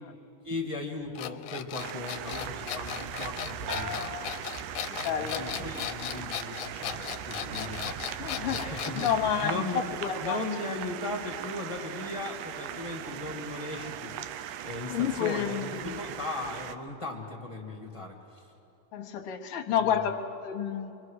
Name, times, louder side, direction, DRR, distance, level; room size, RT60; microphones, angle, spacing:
voice 1, 0.4-4.3 4.9-8.0 8.3-9.1 9.4-9.8 10.2-14.1 14.5-18.5 19.8-20.0, left 2 dB, 20° left, -1 dB, 0.9 m, -37 dB
sound 1, 1.2-9.2, left 12 dB, 75° left, 1.9 m, -37 dB
sound 2, 1.8-16.8, right 10 dB, 80° right, 2.3 m, -39 dB
sound 3, 3.7-5.4 5.8-6.4, left 1 dB, 45° right, 2.3 m, -41 dB
voice 2, 4.9-5.7 8.2-10.4 14.9-16.0 18.9-20.9, left 8 dB, 60° left, 4 dB, 1.6 m, -30 dB
27.0 x 23.0 x 6.4 m, 2.8 s
omnidirectional pair, 4.0 m